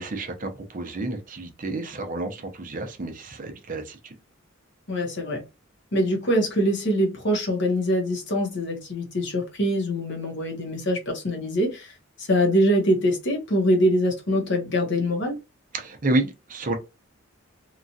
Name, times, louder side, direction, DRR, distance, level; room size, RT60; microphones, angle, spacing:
voice 1, 0.0-4.1 15.7-16.7, right 2 dB, 40° right, 0.6 m, -30 dB
voice 2, 4.9-5.4 5.9-15.4, equal, 60° left, 1.0 m, -24 dB
3.0 x 2.4 x 2.6 m
head